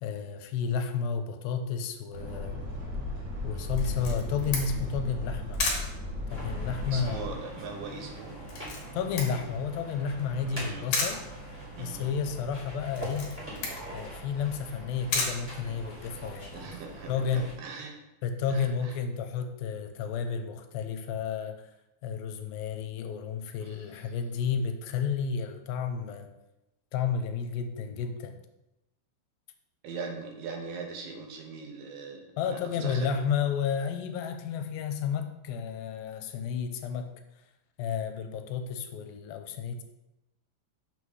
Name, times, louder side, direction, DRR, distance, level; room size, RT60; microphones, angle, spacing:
voice 1, 0.0-2.6 3.4-5.6 6.3-7.3 8.9-11.2 11.8-13.4 13.9-16.7 17.1-17.5 18.2-21.7 22.0-26.3 26.9-28.4 32.4-37.1 37.8-39.8, left 6 dB, 85° left, 7 dB, 2.3 m, -32 dB
sound 1, 2.1-7.3, left 2 dB, 60° right, 1.4 m, -35 dB
Camera, 3.8-16.3, left 3 dB, 60° left, 2.0 m, -36 dB
sound 2, 6.3-17.5, right 1 dB, 10° right, 0.6 m, -43 dB
voice 2, 6.9-8.4 10.4-10.9 11.8-12.1 16.5-18.0 18.5-19.0 23.6-24.0 29.8-33.1, right 4 dB, 75° right, 2 dB, 2.4 m, -41 dB
5.9 x 3.2 x 5.4 m, 0.95 s
omnidirectional pair, 4.2 m